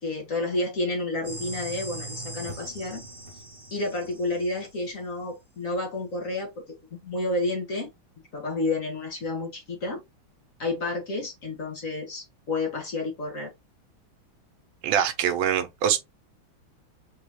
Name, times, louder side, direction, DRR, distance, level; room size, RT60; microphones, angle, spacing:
voice 1, 0.0-3.0 3.7-6.6 6.9-7.9 8.3-10.0 10.6-13.5, left 2 dB, 45° left, 1.4 m, -30 dB
sound 1, 1.2-4.9, right 2 dB, 30° right, 1.7 m, -40 dB
voice 2, 14.8-16.0, right 9 dB, 80° right, 1.5 m, -24 dB
3.8 x 3.6 x 2.9 m
omnidirectional pair, 2.3 m